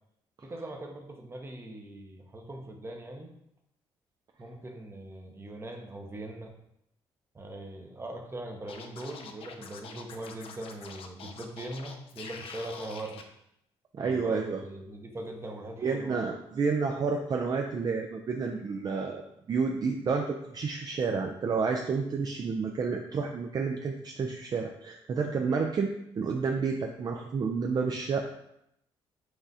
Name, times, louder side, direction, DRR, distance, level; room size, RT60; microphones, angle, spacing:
voice 1, 0.4-3.3 4.4-6.5 7.3-13.2 14.0-16.2, right 1 dB, 25° right, 3 dB, 0.7 m, -41 dB
Scratching (performance technique), 8.7-13.2, left 5 dB, 65° left, 0.5 m, -45 dB
voice 2, 13.9-14.6 15.8-19.2 19.5-28.2, right 5 dB, 40° right, 3 dB, 0.4 m, -30 dB
6.0 x 2.4 x 2.7 m, 0.78 s
cardioid pair, 75°, 10 cm